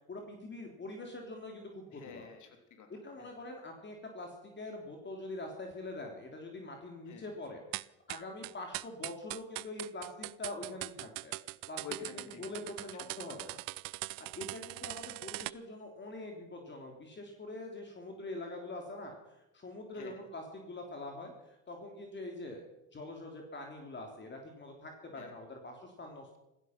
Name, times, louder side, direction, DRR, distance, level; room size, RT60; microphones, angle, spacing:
voice 1, 0.1-2.2 2.9-7.6 8.1-11.4 11.7-11.8 12.1-13.6 14.2-22.6 22.9-26.4, left 2 dB, 30° left, 2 dB, 3.5 m, -44 dB
voice 2, 1.9-2.9 3.2-3.3 7.1-7.3 11.8-13.6 14.4-14.5 19.9-20.2 25.1-25.3, left 7 dB, 60° left, 5 dB, 3.5 m, -49 dB
sound 1, 7.7-15.5, right 24 dB, 75° right, 0.6 m, -41 dB
15.5 x 15.5 x 6.0 m, 0.91 s
supercardioid pair, 80°, 34 cm